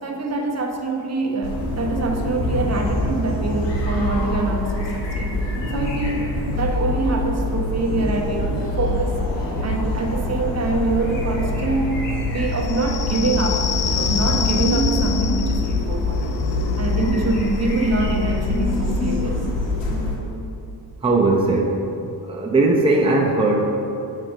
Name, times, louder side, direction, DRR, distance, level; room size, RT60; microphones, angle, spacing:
voice 1, 0.0-9.2 9.6-12.0 12.3-16.4 16.8-19.5, right 3 dB, 35° right, 1 dB, 1.1 m, -25 dB
sound 1, 1.4-20.2, left 2 dB, 90° left, 1.5 m, -24 dB
sound 2, 12.5-19.8, left 7 dB, 65° left, 0.7 m, -30 dB
voice 2, 21.0-21.7 22.3-23.9, right 2 dB, 15° right, -2 dB, 0.8 m, -18 dB
6.6 x 5.0 x 6.3 m, 2.8 s
cardioid pair, 90°, 42 cm